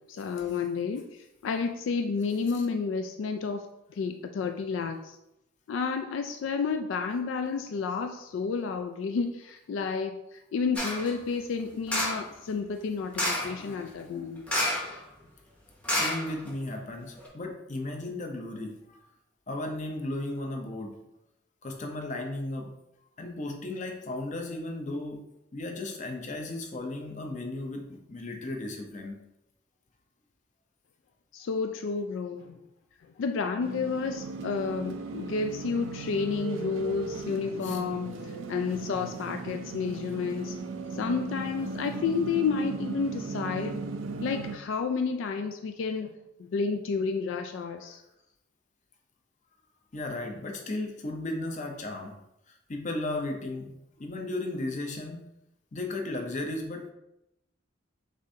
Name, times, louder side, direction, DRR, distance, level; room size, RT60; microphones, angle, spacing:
voice 1, 0.1-1.0 1.4-3.6 4.0-5.2 5.7-10.2 10.5-14.4 31.3-32.6 33.2-38.2 38.5-40.6 40.9-43.8 44.2-46.1 46.4-48.0, left 5 dB, 80° left, 6 dB, 0.3 m, -30 dB
sound 1, 10.8-11.1 11.9-12.3 13.1-13.6 14.5-15.0 15.2-15.3 15.8-16.7 17.2-17.3, left 1 dB, 5° left, 0.7 m, -29 dB
voice 2, 13.6-14.3 15.9-18.8 19.5-21.0 21.6-22.7 23.2-25.2 25.5-29.2 37.6-37.8 49.9-52.1 52.7-55.3 55.7-56.9, left 2 dB, 40° left, 2 dB, 0.6 m, -35 dB
sound 2, 33.6-44.6, right 4 dB, 85° right, 0.4 m, -37 dB
6.6 x 2.5 x 2.7 m, 0.87 s
head